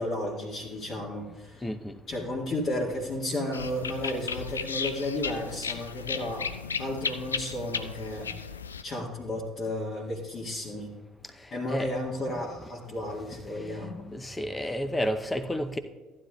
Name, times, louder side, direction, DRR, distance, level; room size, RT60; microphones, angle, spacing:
voice 1, 0.0-1.7 2.1-6.5 6.8-8.3 8.8-11.0 11.5-14.0, left 1 dB, 45° left, -5 dB, 1.8 m, -33 dB
voice 2, 1.6-1.9 11.7-12.0 13.3-15.8, equal, 15° left, 10 dB, 0.8 m, -32 dB
sound 1, 3.5-8.8, left 6 dB, 80° left, 0.3 m, -34 dB
14.5 x 10.0 x 2.4 m, 1.3 s
figure-of-eight pair, 55°, 0 cm